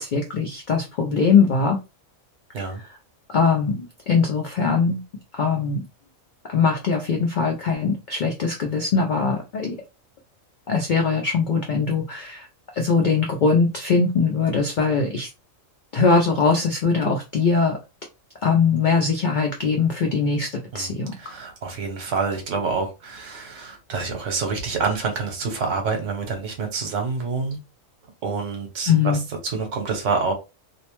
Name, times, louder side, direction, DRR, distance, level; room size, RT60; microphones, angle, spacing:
voice 1, 0.0-1.8 3.3-5.0 5.3-5.8 6.5-9.8 10.7-12.5 12.7-15.3 15.9-17.8 18.4-20.5 20.7-21.1 28.9-29.2, left 5 dB, 85° left, 0.4 m, -21 dB
voice 2, 20.7-27.6 28.2-29.2 29.4-30.3, right 4 dB, 65° right, 1.1 m, -27 dB
2.5 x 2.1 x 2.9 m
omnidirectional pair, 1.4 m